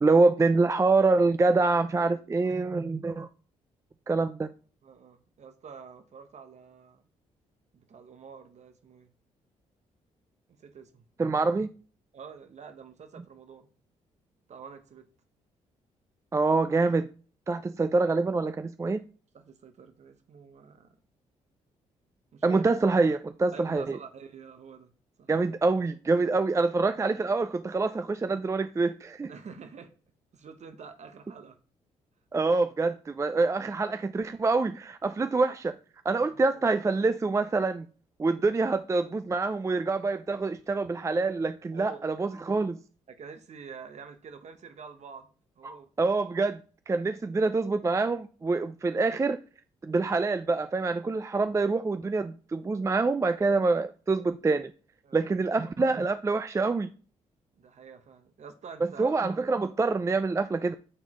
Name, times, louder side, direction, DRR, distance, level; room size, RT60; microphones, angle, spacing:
voice 1, 0.0-3.3 4.1-4.5 11.2-11.7 16.3-17.1 17.5-19.0 22.4-24.0 25.3-29.3 32.3-35.8 36.0-37.9 38.2-42.8 45.6-46.6 46.9-49.4 49.8-54.7 55.1-56.9 58.8-60.7, right 3 dB, 20° right, 0.4 m, -26 dB
voice 2, 1.9-2.6 4.8-7.0 7.7-9.1 10.6-11.0 12.1-13.7 14.5-15.1 19.3-21.0 22.3-22.6 23.5-24.9 25.2-25.3 26.2-26.5 29.3-29.9 30.3-31.6 36.3-36.6 41.7-42.2 43.1-45.3 45.6-45.9 55.0-55.3 57.6-59.2, right 6 dB, 55° right, 1.2 m, -47 dB
8.5 x 3.8 x 3.1 m
supercardioid pair, 60°, 14 cm